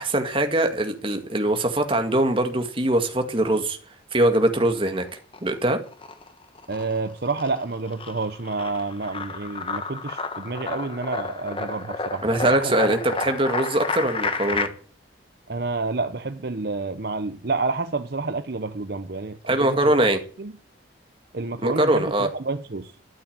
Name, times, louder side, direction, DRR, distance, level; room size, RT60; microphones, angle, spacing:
voice 1, 0.0-3.8 4.1-5.0 5.4-5.8 12.2-14.7 19.5-20.2 21.6-22.3, right 1 dB, 30° right, 2.1 m, -22 dB
sound 1, 4.7-5.5 5.9-14.7, left 4 dB, 30° left, 1.2 m, -31 dB
voice 2, 6.7-12.9 15.5-19.9 20.4-20.5 21.3-22.9, right 3 dB, 55° right, 0.8 m, -29 dB
13.0 x 8.7 x 8.9 m
head